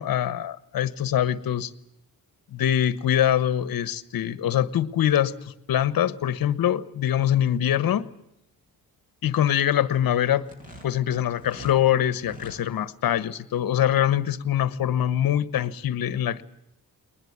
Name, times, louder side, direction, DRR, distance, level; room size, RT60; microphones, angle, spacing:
voice 1, 0.0-1.7 2.5-5.3 5.7-8.0 9.2-10.5 10.8-16.4, left 11 dB, 65° left, 15 dB, 1.4 m, -23 dB
sound 1, 10.4-11.8 12.2-12.6, equal, 20° right, 7.2 m, -44 dB
21.5 x 20.0 x 9.6 m, 0.79 s
cardioid pair, 140°, 38 cm